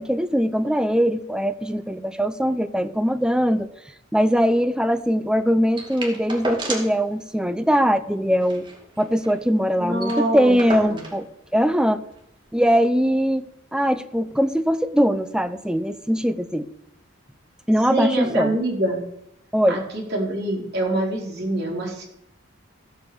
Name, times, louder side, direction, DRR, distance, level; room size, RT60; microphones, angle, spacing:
voice 1, 0.0-3.7 4.1-8.7 9.0-11.3 11.5-12.0 12.5-13.4 13.7-16.7 17.7-18.5 19.5-19.8, equal, 5° right, 11 dB, 0.6 m, -21 dB
sound 1, 5.8-7.0 7.4-7.5 7.7-7.9 8.3-9.4 9.7-9.8 10.0-11.2 12.1-12.2, right 1 dB, 20° right, 2.4 m, -32 dB
voice 2, 9.8-10.5 10.9-11.0 17.9-19.0 19.7-22.0, right 1 dB, 50° right, -2 dB, 4.3 m, -25 dB
15.0 x 8.2 x 7.1 m, 0.78 s
head